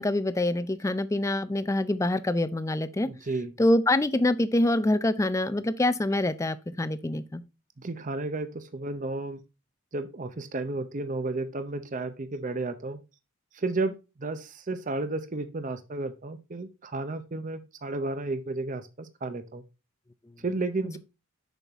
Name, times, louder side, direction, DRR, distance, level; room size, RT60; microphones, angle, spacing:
voice 1, 0.0-3.1 3.6-7.4, left 1 dB, 15° left, 0.4 m, -25 dB
voice 2, 3.0-3.6 7.8-9.4 9.9-13.0 13.5-19.6 20.4-21.0, right 2 dB, 35° right, 0.6 m, -32 dB
7.0 x 5.8 x 3.5 m
head